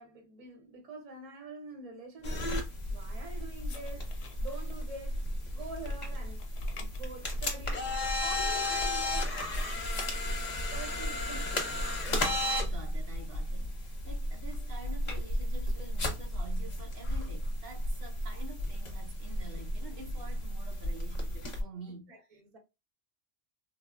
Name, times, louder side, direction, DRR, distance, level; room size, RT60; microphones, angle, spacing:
voice 1, 0.0-2.5 2.9-4.1 4.4-5.2 5.5-6.4 6.7-9.6 10.7-11.6 22.1-22.6, right 3 dB, 40° right, 0.8 m, -46 dB
sound 1, 2.2-9.4, left 6 dB, 80° left, 0.8 m, -54 dB
sound 2, 2.2-21.6, left 1 dB, 45° left, 0.8 m, -34 dB
voice 2, 10.5-10.9 12.0-22.4, right 3 dB, 65° right, 0.9 m, -48 dB
3.3 x 2.0 x 2.3 m
omnidirectional pair, 1.0 m